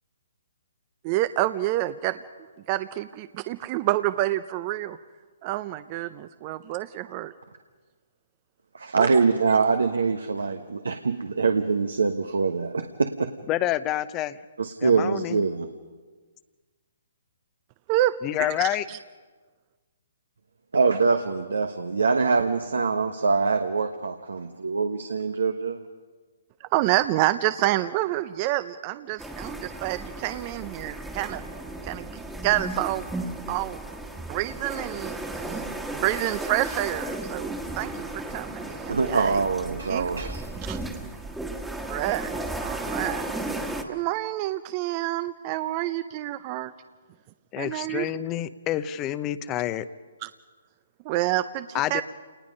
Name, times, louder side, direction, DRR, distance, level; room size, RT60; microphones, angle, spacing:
voice 1, 1.0-2.2 2.7-5.0 5.4-7.3 9.0-9.2 17.9-19.0 26.6-31.4 31.8-32.1 32.4-33.1 33.5-33.9 34.2-39.4 39.9-40.1 40.7-40.8 41.9-42.3 42.6-43.2 43.9-46.7 47.6-48.1 50.2-50.3 51.0-52.0, right 15 dB, 35° right, 14 dB, 0.6 m, -28 dB
voice 2, 8.7-13.3 14.6-15.7 20.7-25.8 38.9-40.4, right 4 dB, 80° right, 7 dB, 1.1 m, -24 dB
voice 3, 13.5-14.4 14.8-15.4 18.2-18.9 47.5-49.9 51.7-52.0, left 13 dB, 25° left, 15 dB, 0.7 m, -28 dB
sound 1, 29.2-43.8, right 2 dB, 5° right, 1.5 m, -34 dB
28.5 x 19.5 x 5.4 m, 1.4 s
hypercardioid pair, 135°, 0 cm